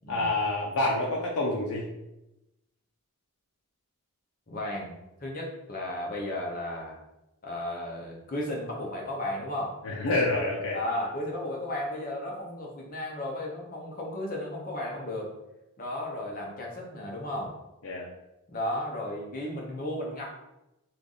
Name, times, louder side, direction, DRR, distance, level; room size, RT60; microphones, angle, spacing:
voice 1, 0.1-1.9 9.8-10.8 17.8-18.1, left 2 dB, 80° left, -3 dB, 0.5 m, -27 dB
voice 2, 4.5-7.0 7.4-9.8 10.7-15.3 15.8-17.5 18.5-20.3, left 1 dB, 40° left, -2 dB, 0.8 m, -34 dB
3.3 x 2.3 x 3.9 m, 0.94 s
head